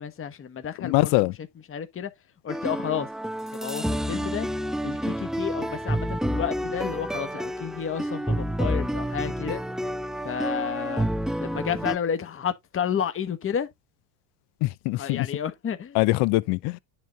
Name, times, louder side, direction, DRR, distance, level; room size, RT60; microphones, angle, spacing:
voice 1, 0.0-1.3 1.7-2.1 2.4-3.1 3.5-4.5 4.8-9.6 10.2-11.1 11.4-13.7 14.9-16.0, left 8 dB, 30° left, 1.5 m, -31 dB
voice 2, 0.8-1.3 14.6-15.3 15.9-16.8, left 21 dB, 60° left, 0.9 m, -23 dB
sound 1, 2.5-12.0, equal, ahead, 0.4 m, -29 dB
10.5 x 4.0 x 4.0 m
supercardioid pair, 105°, 45 cm